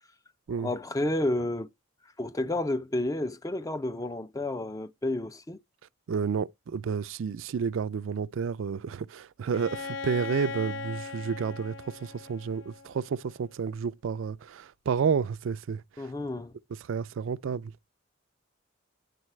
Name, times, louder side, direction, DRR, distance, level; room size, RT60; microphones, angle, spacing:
voice 1, 0.6-1.7 2.2-5.6 16.0-16.6, left 1 dB, 15° left, 0.4 m, -30 dB
voice 2, 6.1-16.1 16.8-17.7, right 6 dB, 80° right, 0.4 m, -31 dB
Bowed string instrument, 9.5-13.3, left 5 dB, 80° left, 0.5 m, -39 dB
10.5 x 4.0 x 3.1 m
head